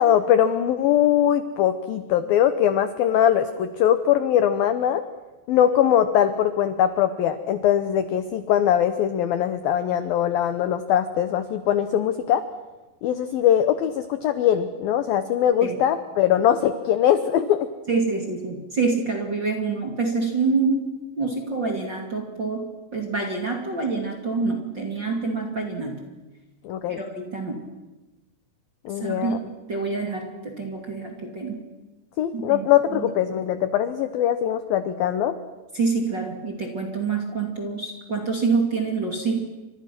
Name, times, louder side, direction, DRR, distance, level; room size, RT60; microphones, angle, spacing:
voice 1, 0.0-5.0 5.5-12.4 13.0-17.7 26.6-27.0 28.9-29.4 32.2-35.4, left 10 dB, 80° left, 10 dB, 2.1 m, -21 dB
voice 2, 17.9-26.0 26.9-27.6 29.0-31.6 32.3-33.1 35.7-39.4, right 4 dB, 30° right, 2 dB, 2.2 m, -27 dB
30.0 x 25.5 x 6.1 m, 1.1 s
omnidirectional pair, 5.4 m